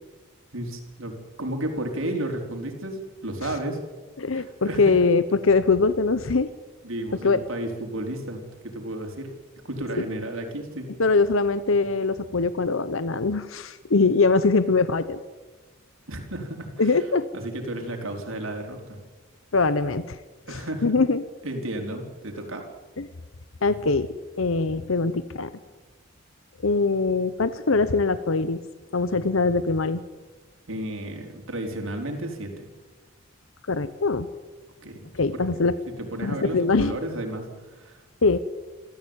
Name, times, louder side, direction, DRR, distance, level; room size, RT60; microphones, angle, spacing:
voice 1, 0.5-1.1 1.4-3.8 4.3-4.8 6.8-9.3 9.6-10.9 16.1-16.9 17.3-19.0 20.5-21.0 21.4-22.6 30.7-32.7 34.8-35.0 35.5-35.7 36.0-38.0, right 1 dB, 80° right, 3 dB, 4.3 m, -33 dB
voice 2, 4.2-6.5 7.2-7.4 11.0-15.2 16.8-17.3 19.5-20.2 20.5-21.2 23.0-23.1 23.6-24.1 24.4-25.5 26.6-28.6 28.9-30.0 33.7-34.3 35.1-35.8 36.2-36.9 38.2-38.4, left 3 dB, 75° left, 13 dB, 0.9 m, -22 dB
27.5 x 14.0 x 9.0 m, 1.3 s
head